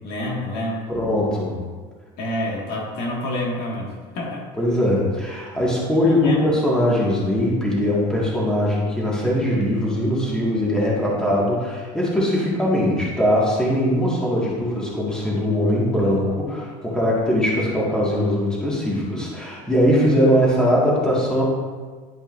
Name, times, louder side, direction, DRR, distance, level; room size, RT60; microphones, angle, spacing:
voice 1, 0.0-0.8 2.2-4.5 6.0-6.6, left 1 dB, 65° left, -2 dB, 1.9 m, -28 dB
voice 2, 0.9-1.6 4.6-21.4, equal, 5° left, -6 dB, 1.8 m, -21 dB
10.5 x 5.1 x 2.6 m, 1.5 s
cardioid pair, 125°, 18 cm